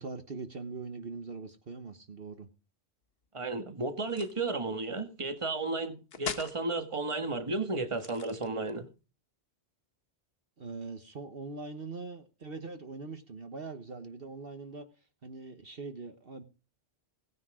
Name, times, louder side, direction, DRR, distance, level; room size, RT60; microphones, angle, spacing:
voice 1, 0.0-2.5 10.6-14.9 15.2-16.4, right 4 dB, 55° right, 1.4 m, -42 dB
voice 2, 3.3-8.8, right 3 dB, 25° right, 1.7 m, -33 dB
sound 1, 4.0-4.5 6.1-6.6 7.9-8.8, left 6 dB, 60° left, 1.4 m, -40 dB
17.5 x 9.9 x 5.0 m
omnidirectional pair, 1.2 m